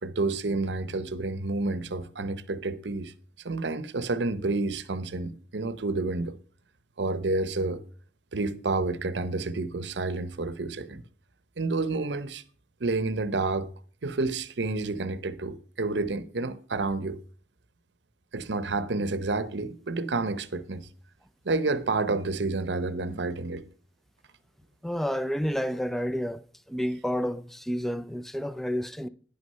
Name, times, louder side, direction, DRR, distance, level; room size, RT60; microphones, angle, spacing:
voice 1, 0.0-3.1 3.4-6.4 7.0-7.8 8.3-11.0 11.6-12.4 12.8-13.7 14.0-17.2 18.3-20.9 21.4-23.7, right 3 dB, 85° right, 0.8 m, -29 dB
voice 2, 24.8-26.4 26.7-29.1, equal, ahead, 0.4 m, -30 dB
10.0 x 6.3 x 5.5 m
head